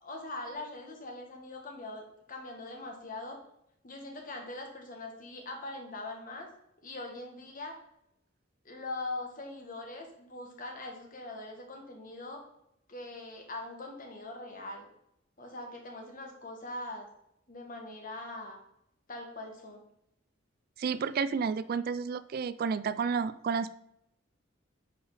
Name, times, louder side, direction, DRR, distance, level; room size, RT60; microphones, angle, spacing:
voice 1, 0.0-3.4 3.8-6.5 6.8-7.8 8.6-12.4 12.9-14.9 15.4-17.1 17.5-18.6 19.1-19.8, left 2 dB, 45° left, 2 dB, 1.7 m, -42 dB
voice 2, 20.8-23.7, right 6 dB, 50° right, 15 dB, 0.3 m, -31 dB
8.7 x 5.2 x 4.0 m, 0.77 s
head